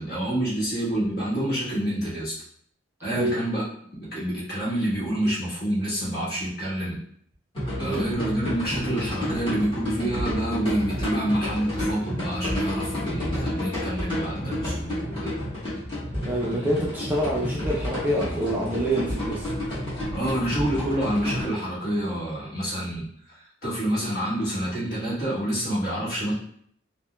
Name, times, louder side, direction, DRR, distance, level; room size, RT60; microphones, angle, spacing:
voice 1, 0.0-2.3 3.0-3.6 3.9-7.0 7.8-15.4 20.1-23.0 23.6-26.3, right 1 dB, 50° left, -8 dB, 1.2 m, -27 dB
voice 2, 3.1-3.4 7.8-8.1 16.2-19.5, right 1 dB, 10° right, -5 dB, 0.4 m, -26 dB
sound 1, 7.5-21.4, left 1 dB, 25° left, 1.2 m, -30 dB
4.0 x 2.1 x 2.2 m, 0.67 s
head